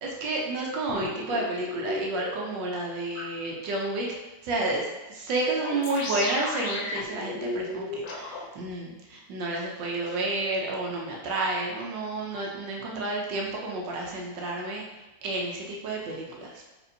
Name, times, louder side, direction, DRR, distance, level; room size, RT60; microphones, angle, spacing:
voice 1, 0.0-4.1 4.4-14.8 15.2-16.5, right 2 dB, 80° right, -1 dB, 1.3 m, -30 dB
sound 1, 0.9-2.3 3.1-3.2 5.5-8.4, left 2 dB, 75° left, 1.3 m, -34 dB
4.3 x 3.2 x 2.6 m, 1.1 s
omnidirectional pair, 2.0 m